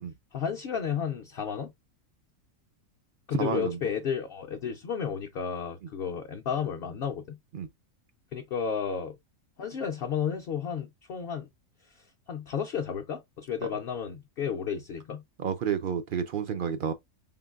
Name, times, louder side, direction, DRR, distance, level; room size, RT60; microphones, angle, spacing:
voice 1, 0.3-1.7 3.3-7.4 8.3-9.2 9.6-11.5 12.3-15.2, left 7 dB, 60° left, 0.6 m, -32 dB
voice 2, 3.4-3.8 7.5-7.7 13.6-13.7 15.4-16.9, right 7 dB, 70° right, 0.5 m, -30 dB
4.1 x 3.8 x 2.3 m
omnidirectional pair, 1.4 m